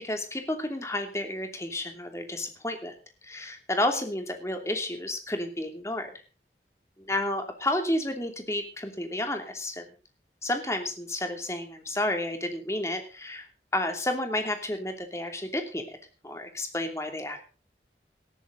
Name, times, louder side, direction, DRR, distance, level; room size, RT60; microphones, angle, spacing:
voice 1, 0.0-2.9 3.2-6.1 7.0-9.9 10.4-13.5 13.7-16.0 16.2-17.4, left 1 dB, 15° left, 5 dB, 2.8 m, -31 dB
19.0 x 13.5 x 4.0 m, 0.36 s
head